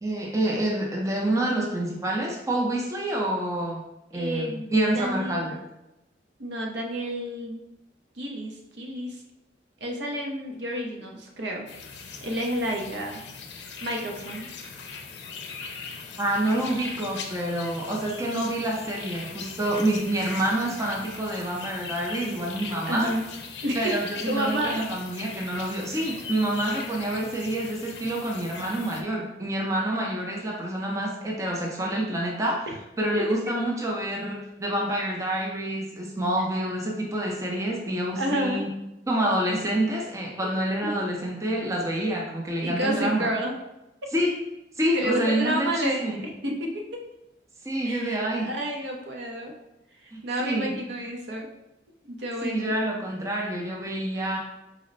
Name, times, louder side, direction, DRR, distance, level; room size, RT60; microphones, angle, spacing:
voice 1, 0.0-3.8 4.1-5.6 16.2-23.1 23.8-32.7 33.0-38.7 39.1-43.3 44.1-44.3 44.8-45.7 46.0-46.2 47.6-48.5 50.1-50.7 52.4-54.4, right 1 dB, 20° right, -1 dB, 0.5 m, -27 dB
voice 2, 4.1-5.4 6.4-7.6 8.2-9.2 9.8-11.6 12.2-13.2 13.8-14.5 22.9-23.3 23.6-24.0 24.3-24.8 33.2-33.5 38.2-38.6 40.8-40.9 42.6-43.5 44.9-47.0 47.9-49.5 50.0-51.5 52.1-52.7, equal, 70° right, 1 dB, 0.6 m, -30 dB
sound 1, 11.7-29.0, left 5 dB, 75° left, 0.5 m, -40 dB
4.1 x 2.0 x 3.9 m, 0.92 s
head